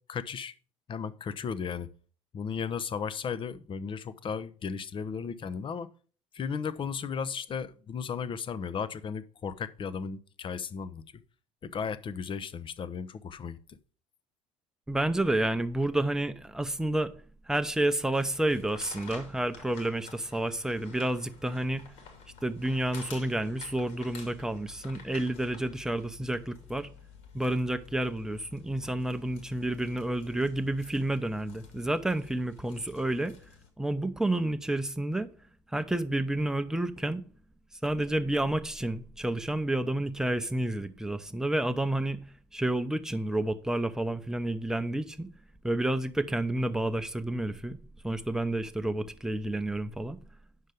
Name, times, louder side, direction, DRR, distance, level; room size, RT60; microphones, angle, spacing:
voice 1, 0.1-0.5 0.9-1.9 2.3-5.9 6.3-11.2 11.6-13.8, left 6 dB, 30° left, 0.8 m, -35 dB
voice 2, 14.9-17.1 17.5-21.9 22.4-26.9 27.3-33.3 33.8-35.3 35.7-37.2 37.8-42.2 42.5-45.3 45.6-47.8 48.0-50.2, right 1 dB, 5° right, 0.9 m, -30 dB
sound 1, 18.1-33.7, left 6 dB, 60° left, 2.8 m, -51 dB
9.5 x 6.5 x 5.0 m
figure-of-eight pair, 60°, 16 cm